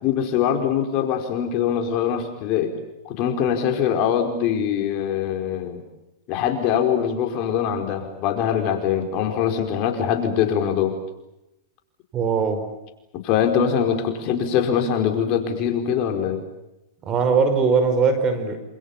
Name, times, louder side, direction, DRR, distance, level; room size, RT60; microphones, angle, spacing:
voice 1, 0.0-2.7 3.0-5.8 6.3-11.0 13.1-16.4, left 8 dB, 45° left, 5 dB, 4.8 m, -23 dB
voice 2, 12.1-12.7 17.0-18.6, right 5 dB, 30° right, 8 dB, 5.1 m, -20 dB
27.5 x 27.0 x 7.3 m, 0.91 s
hypercardioid pair, 125°, 2 cm